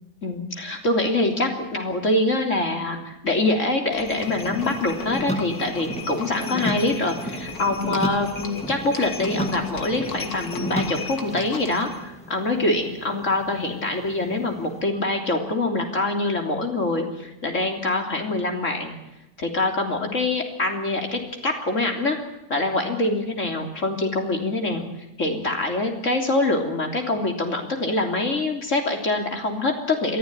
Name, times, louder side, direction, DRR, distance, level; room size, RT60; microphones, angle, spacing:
voice 1, 0.2-18.9 19.4-22.2 22.5-24.8 25.2-30.2, left 2 dB, 45° left, 3 dB, 3.7 m, -24 dB
Livestock farm animals working animals, 3.9-12.0, left 4 dB, 65° left, 2.3 m, -36 dB
sound 1, 4.2-14.8, equal, 5° left, 1.9 m, -33 dB
22.5 x 15.5 x 9.8 m, 0.91 s
omnidirectional pair, 1.8 m